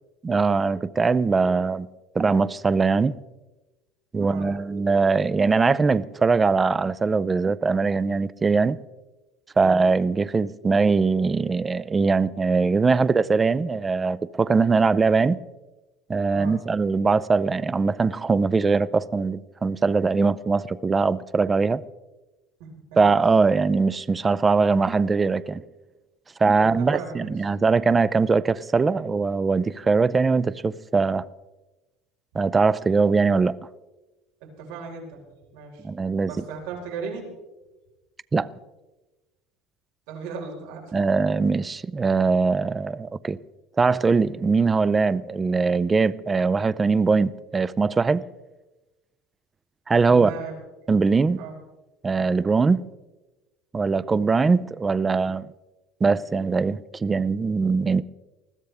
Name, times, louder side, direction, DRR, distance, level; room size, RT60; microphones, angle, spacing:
voice 1, 0.2-1.9 2.1-3.2 4.1-8.8 9.6-15.4 16.1-21.8 23.0-25.6 26.4-31.3 32.3-33.6 35.8-36.3 38.3-38.5 40.9-43.4 43.8-48.2 49.9-50.3 50.9-51.4 52.0-52.9 53.7-55.5 56.0-58.0, right 4 dB, 15° right, 0.4 m, -21 dB
voice 2, 4.2-4.5 9.5-9.9 16.3-16.6 22.6-23.0 26.6-27.5 34.4-35.2 35.5-35.9 36.3-37.3 40.1-40.9 50.1-50.6 51.4-51.6, right 5 dB, 75° right, 4.5 m, -37 dB
20.5 x 14.5 x 3.4 m
cardioid pair, 155°, 0 cm